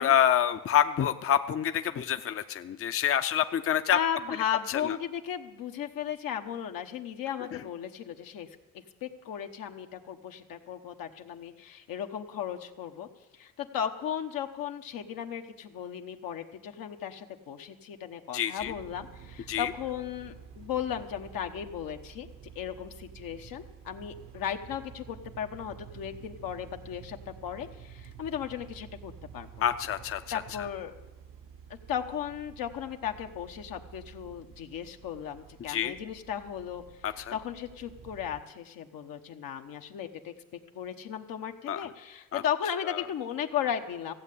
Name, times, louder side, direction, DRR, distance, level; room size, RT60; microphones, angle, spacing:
voice 1, 0.0-4.0 4.7-5.0 7.5-7.6 18.3-18.7 19.5-19.7 29.6-30.7 35.7-35.9 37.0-37.3 41.7-41.9 42.3-42.4 42.9-43.0, left 9 dB, 40° left, 9 dB, 0.6 m, -27 dB
voice 2, 3.9-8.5 9.0-13.1 13.3-22.3 22.5-29.5 30.3-30.9 31.7-36.8 37.3-40.3 40.7-44.1, left 9 dB, 80° left, 5 dB, 1.1 m, -36 dB
sound 1, 18.6-38.4, right 8 dB, 70° right, 0.9 m, -50 dB
15.0 x 7.6 x 8.3 m, 1.0 s
cardioid pair, 80°, 34 cm